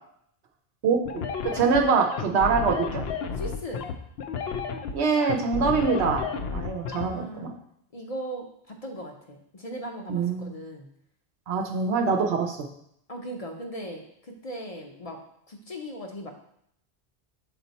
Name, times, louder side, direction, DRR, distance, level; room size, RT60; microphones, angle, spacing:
voice 1, 0.8-3.0 4.9-6.2 6.5-7.5 10.1-10.5 11.5-12.6, right 5 dB, 90° right, 3 dB, 0.9 m, -24 dB
sound 1, 1.1-7.1, left 6 dB, 70° left, 0.8 m, -32 dB
voice 2, 3.3-3.9 6.9-7.5 7.9-10.9 13.1-15.2 15.5-16.3, equal, 40° left, 2 dB, 0.7 m, -38 dB
6.1 x 4.4 x 4.0 m, 0.71 s
omnidirectional pair, 1.1 m